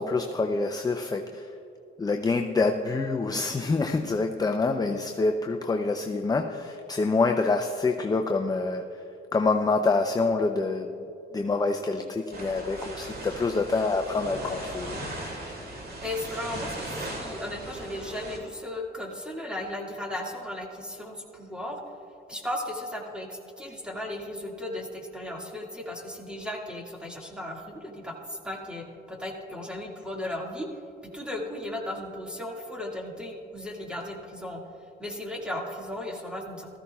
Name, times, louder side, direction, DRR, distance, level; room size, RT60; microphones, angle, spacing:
voice 1, 0.0-1.5 2.0-8.8 9.3-10.9 11.3-15.0, left 3 dB, 20° left, 5 dB, 0.5 m, -26 dB
sound 1, 12.3-18.4, right 1 dB, 50° right, 2.4 m, -38 dB
voice 2, 16.0-21.8 22.3-30.7 31.1-34.6 35.0-36.8, left 1 dB, 5° right, 0 dB, 2.0 m, -36 dB
15.5 x 14.0 x 2.3 m, 2.8 s
cardioid pair, 90°, 20 cm